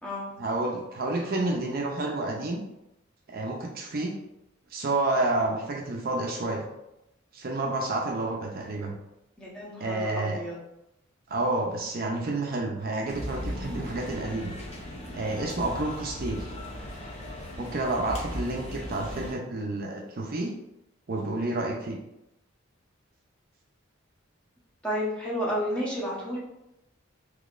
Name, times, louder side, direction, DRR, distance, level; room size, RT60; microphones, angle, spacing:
voice 1, 0.4-2.6 3.3-4.1 4.7-6.7 7.3-9.0 9.8-10.4 11.3-14.6 15.1-16.5 17.6-20.5 21.1-22.0, right 2 dB, 50° right, 0 dB, 0.5 m, -29 dB
voice 2, 9.4-10.6 24.8-26.4, equal, 5° left, -6 dB, 0.9 m, -31 dB
sound 1, 13.1-19.3, equal, 35° left, 0.7 m, -37 dB
3.9 x 2.9 x 2.4 m, 0.87 s
head